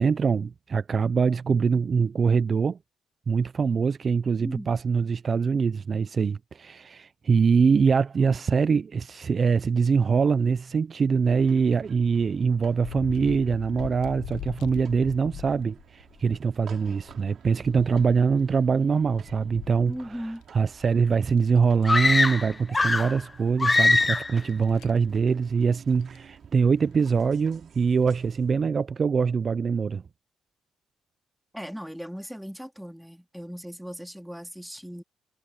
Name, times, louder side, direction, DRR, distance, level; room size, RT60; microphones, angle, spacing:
voice 1, 0.0-2.8 3.3-30.0, right 5 dB, 40° right, 0.4 m, -23 dB
sound 1, 11.3-28.5, right 8 dB, 60° right, 3.8 m, -53 dB
sound 2, 12.8-16.4 16.8-20.4 20.8-20.9 21.3-22.6 22.9-23.0 23.5-23.6 24.4-25.0 26.0-26.2 26.9-27.2, left 15 dB, 85° left, 0.7 m, -42 dB
voice 2, 19.9-20.4 31.5-35.0, equal, ahead, 2.8 m, -38 dB
sound 3, 21.8-23.2 23.6-24.4, left 3 dB, 20° left, 0.6 m, -22 dB
cardioid pair, 90°, 0 cm